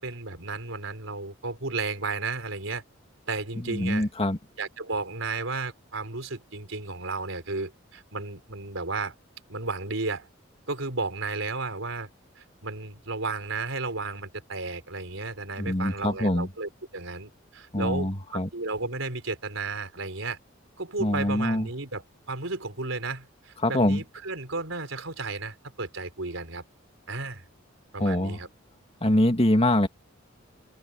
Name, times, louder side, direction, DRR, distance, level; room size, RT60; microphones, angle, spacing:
voice 1, 0.0-2.8 3.3-4.1 4.6-9.1 9.5-10.3 10.7-12.1 12.4-20.4 20.8-26.6 27.1-27.4 27.9-28.5 29.0-29.1, right 3 dB, 80° right, 4.1 m, -33 dB
voice 2, 3.6-4.4 15.6-16.5 17.7-18.5 21.0-21.7 23.6-24.0 28.0-28.4 29.0-29.9, left 1 dB, 30° left, 2.3 m, -24 dB
open air
head